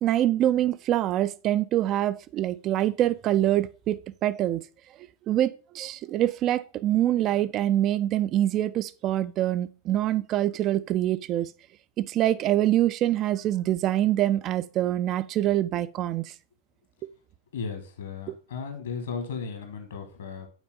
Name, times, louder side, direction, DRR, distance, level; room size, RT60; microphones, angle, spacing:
voice 1, 0.0-4.6 5.3-11.5 12.0-16.3, right 13 dB, 35° right, 0.3 m, -25 dB
voice 2, 17.5-20.5, left 5 dB, 65° left, 1.4 m, -35 dB
8.0 x 4.3 x 3.6 m
figure-of-eight pair, 90°, 0 cm